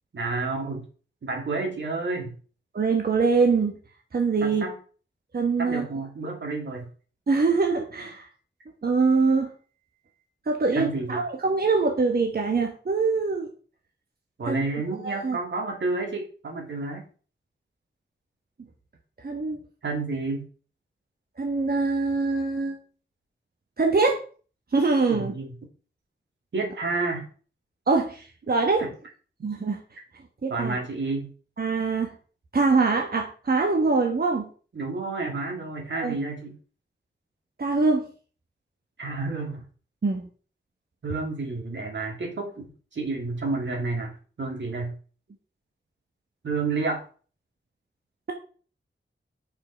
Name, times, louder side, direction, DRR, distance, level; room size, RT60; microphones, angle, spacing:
voice 1, 0.1-0.9 1.2-2.3 4.4-4.8 5.6-6.9 10.7-11.2 14.4-17.1 19.8-20.5 25.1-25.5 26.5-27.3 28.8-28.9 30.5-31.3 34.7-36.5 39.0-39.6 41.0-42.6 42.9-44.1 44.4-44.9 46.4-47.0, right 3 dB, 85° right, 1 dB, 2.5 m, -30 dB
voice 2, 2.7-3.8 4.1-4.6 5.3-5.9 7.3-8.3 8.8-9.5 10.5-13.5 14.5-14.6 15.0-15.4 19.2-19.6 21.4-22.8 23.8-24.2 24.7-25.3 27.9-28.8 29.4-29.8 30.4-30.8 31.6-32.1 32.5-34.5 36.0-36.2 37.6-38.1 40.0-40.2, right 4 dB, 55° right, 2 dB, 1.3 m, -23 dB
7.0 x 5.8 x 5.6 m, 0.40 s
wide cardioid pair, 105°, 19 cm